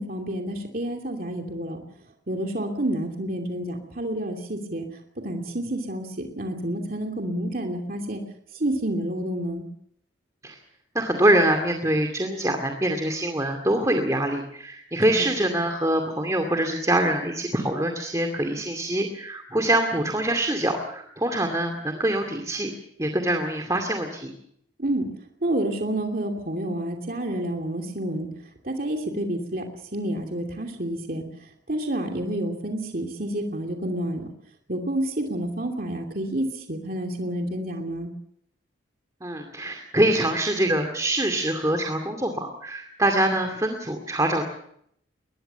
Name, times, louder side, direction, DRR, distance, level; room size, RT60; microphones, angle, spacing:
voice 1, 0.0-1.8 2.3-4.9 5.2-8.2 8.5-9.7 24.8-25.1 25.4-28.3 28.6-29.6 29.9-31.3 31.7-34.3 34.7-38.1, right 1 dB, 50° right, 2 dB, 2.8 m, -29 dB
voice 2, 10.9-22.7 23.0-24.3 39.2-44.4, right 1 dB, 15° right, 4 dB, 2.3 m, -24 dB
22.5 x 20.5 x 6.9 m, 0.71 s
head